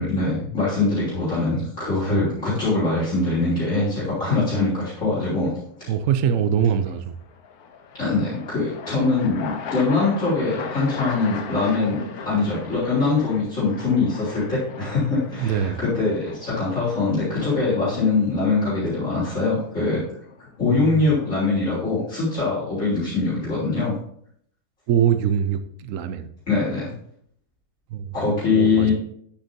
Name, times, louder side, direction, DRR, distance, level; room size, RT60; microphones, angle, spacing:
voice 1, 0.0-5.5 5.8-5.9 8.0-20.0 20.6-23.9 26.5-26.9 28.1-28.9, left 3 dB, 55° left, -11 dB, 3.9 m, -23 dB
voice 2, 5.9-7.2 15.3-15.8 20.7-21.1 24.9-26.3 27.9-28.1 28.5-28.9, right 8 dB, 65° right, 10 dB, 1.0 m, -23 dB
sound 1, 6.8-21.4, left 5 dB, 80° left, 1.4 m, -38 dB
9.7 x 7.4 x 2.7 m, 0.67 s
omnidirectional pair, 1.6 m